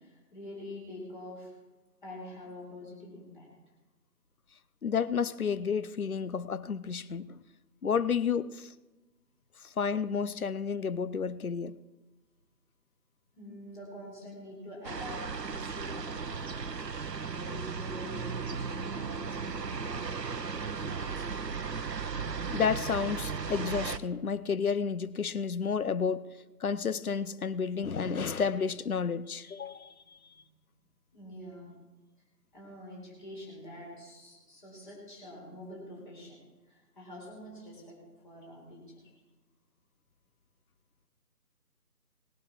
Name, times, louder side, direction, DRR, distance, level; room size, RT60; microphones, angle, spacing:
voice 1, 0.0-1.5 2.0-3.5 13.3-16.9 17.2-21.5 30.1-30.5 31.1-31.8 32.5-36.4 36.7-38.0 38.2-39.0, left 1 dB, 30° left, 4.3 m, -46 dB
voice 2, 4.8-7.4 7.8-8.7 9.6-11.8 22.5-26.3 26.6-29.9, left 6 dB, 60° left, 0.7 m, -31 dB
sound 1, 14.8-24.0, right 5 dB, 85° right, 0.9 m, -36 dB
19.0 x 9.3 x 4.9 m
figure-of-eight pair, 160°, 49 cm